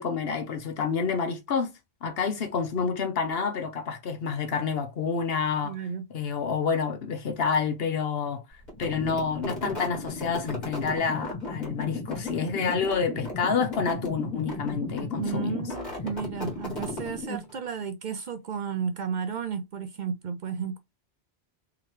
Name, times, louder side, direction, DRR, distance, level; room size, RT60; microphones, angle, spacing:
voice 1, 0.0-1.7 2.0-5.7 6.1-8.4 8.8-15.6, left 5 dB, 70° left, 1.1 m, -28 dB
voice 2, 5.6-6.1 12.5-12.8 15.1-20.8, right 6 dB, 55° right, 0.6 m, -33 dB
sound 1, 8.7-17.7, left 3 dB, 45° left, 1.9 m, -35 dB
3.7 x 3.0 x 3.1 m
omnidirectional pair, 1.1 m